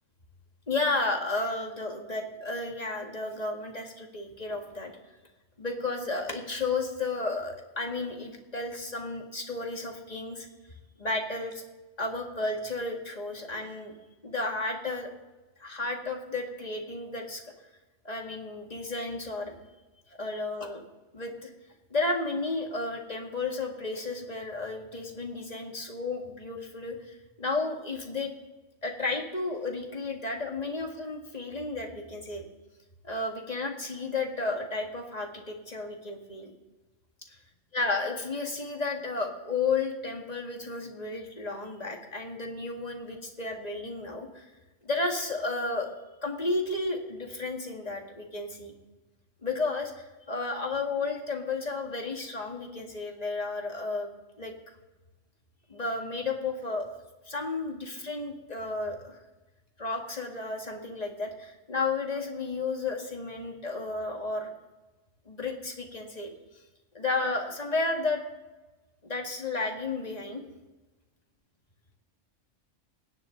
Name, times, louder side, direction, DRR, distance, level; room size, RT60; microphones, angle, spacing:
voice 1, 0.7-4.9 5.6-10.5 11.0-11.6 12.0-13.9 14.2-15.1 15.6-17.4 18.0-19.6 20.2-20.8 21.1-21.5 21.9-28.3 28.8-32.4 33.0-36.5 37.7-44.5 44.8-45.9 46.2-48.7 49.4-54.1 54.4-54.5 55.7-57.0 57.3-59.2 59.8-64.5 65.3-66.3 66.9-68.2 69.0-70.4, left 3 dB, 30° left, 1 dB, 2.1 m, -32 dB
23.0 x 10.0 x 3.9 m, 1.1 s
omnidirectional pair, 1.3 m